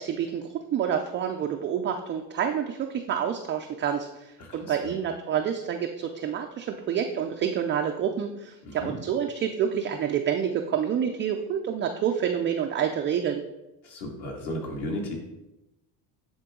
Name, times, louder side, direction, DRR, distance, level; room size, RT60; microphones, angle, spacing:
voice 1, 0.0-13.4, right 8 dB, 25° right, 3 dB, 0.3 m, -28 dB
voice 2, 4.4-5.0 8.6-9.0 13.8-15.1, left 1 dB, 50° left, 0 dB, 2.3 m, -35 dB
9.8 x 3.8 x 3.7 m, 0.95 s
supercardioid pair, 105°, 49 cm